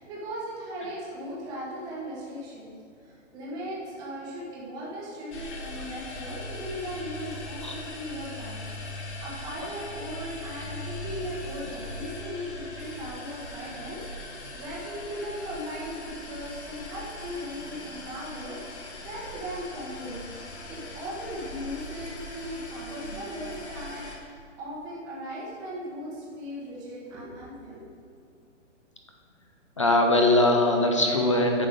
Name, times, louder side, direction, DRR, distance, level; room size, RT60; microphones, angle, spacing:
voice 1, 0.0-20.2 20.7-27.8, equal, 10° right, -6 dB, 0.9 m, -38 dB
sound 1, 5.3-24.2, left 2 dB, 60° left, 1.6 m, -40 dB
voice 2, 29.8-31.7, left 1 dB, 25° left, 2 dB, 0.4 m, -21 dB
9.1 x 5.7 x 4.9 m, 2.4 s
hypercardioid pair, 165°, 38 cm